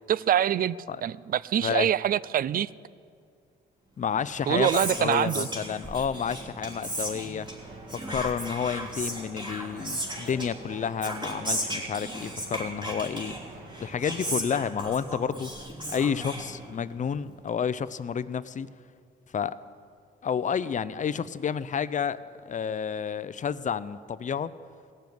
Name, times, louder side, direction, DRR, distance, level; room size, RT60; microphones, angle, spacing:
voice 1, 0.1-0.8 1.0-2.7 4.5-5.5, right 10 dB, 45° right, 20 dB, 0.4 m, -25 dB
voice 2, 4.0-7.5 8.1-13.4 13.8-15.5 15.9-18.7 19.3-19.5 20.2-24.5, left 7 dB, 40° left, 15 dB, 0.5 m, -30 dB
Whispering, 4.1-17.0, right 1 dB, 25° right, 3.2 m, -36 dB
sound 1, 6.7-14.4, right 3 dB, 75° right, 2.1 m, -47 dB
17.0 x 7.1 x 9.4 m, 2.3 s
cardioid pair, 90°, 20 cm